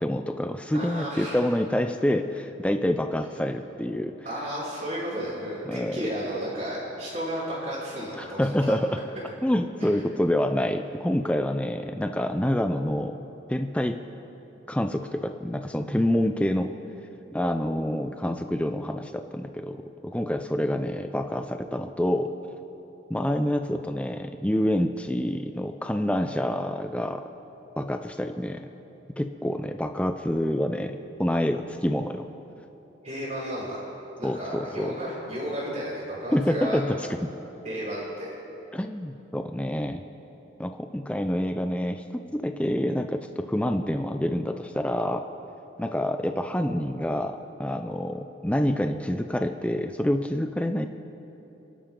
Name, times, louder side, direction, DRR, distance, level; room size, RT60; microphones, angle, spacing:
voice 1, 0.0-4.1 5.7-6.0 8.2-8.9 9.4-13.2 13.5-14.0 14.7-16.7 17.3-22.3 23.1-27.2 27.8-28.7 29.2-32.3 34.2-34.9 36.3-37.3 38.7-40.0 40.6-45.2 45.8-50.9, left 1 dB, 5° left, 6 dB, 0.5 m, -27 dB
voice 2, 0.7-1.4 4.2-8.7 33.0-33.8 34.2-36.8 37.6-38.3, equal, 40° right, -12 dB, 4.1 m, -33 dB
28.5 x 11.5 x 3.8 m, 3.0 s
head